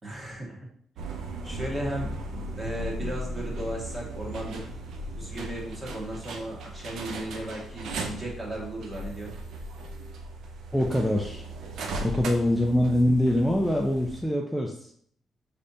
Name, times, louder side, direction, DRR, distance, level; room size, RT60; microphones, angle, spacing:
voice 1, 0.0-0.6 1.4-2.2 2.6-4.6 5.2-9.3, right 1 dB, 30° right, -3 dB, 1.6 m, -35 dB
sound 1, 1.0-14.2, right 1 dB, 75° right, 0.6 m, -37 dB
voice 2, 10.7-11.4 12.0-14.9, left 1 dB, ahead, -1 dB, 0.5 m, -24 dB
5.1 x 3.3 x 2.7 m, 0.62 s
cardioid pair, 90°, 0 cm